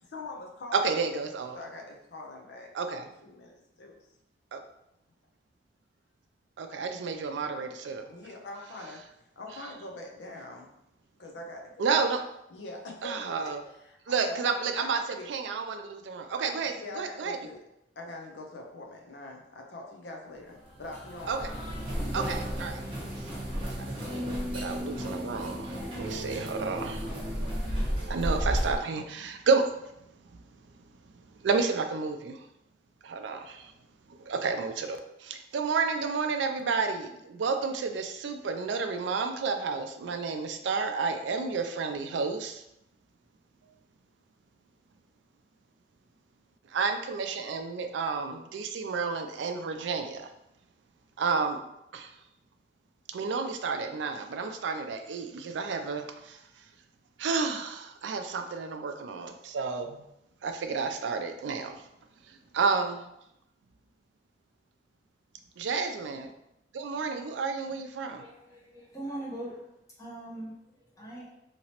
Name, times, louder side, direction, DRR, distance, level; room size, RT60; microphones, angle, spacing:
voice 1, 0.0-1.1 1.5-2.7 3.2-4.0 8.1-9.0 9.4-10.7 11.2-12.0 12.5-14.4 14.8-15.3 16.8-17.6 18.0-21.5, left 2 dB, 70° left, 1 dB, 0.6 m, -43 dB
voice 2, 0.7-1.6 2.7-3.1 4.5-4.6 6.6-8.0 11.8-12.2 13.0-13.6 14.1-15.0 15.3-17.4 21.3-21.5 22.1-22.8 23.8-27.1 28.0-29.6 31.4-32.4 33.0-33.7 34.1-42.6 46.7-50.3 51.2-51.6 51.9-52.1 53.1-56.4 57.2-60.0 60.4-61.8 62.5-63.0 65.6-66.3 66.7-68.2, right 4 dB, 85° right, 6 dB, 0.4 m, -31 dB
sound 1, 20.5-28.8, equal, 30° right, 0.9 m, -33 dB
voice 3, 68.0-69.7 70.0-71.3, right 1 dB, 20° left, -5 dB, 0.9 m, -41 dB
2.9 x 2.9 x 2.9 m, 0.81 s
head